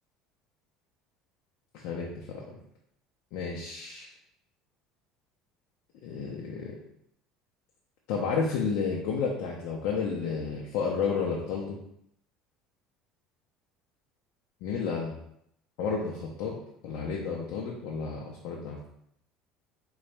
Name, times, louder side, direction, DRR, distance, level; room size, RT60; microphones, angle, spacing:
voice 1, 1.7-2.6 3.3-4.1 6.0-6.8 8.1-11.8 14.6-15.1 15.8-16.6 16.8-18.9, left 5 dB, 75° left, -2 dB, 0.6 m, -31 dB
4.0 x 2.3 x 3.3 m, 0.72 s
supercardioid pair, 120°, 0 cm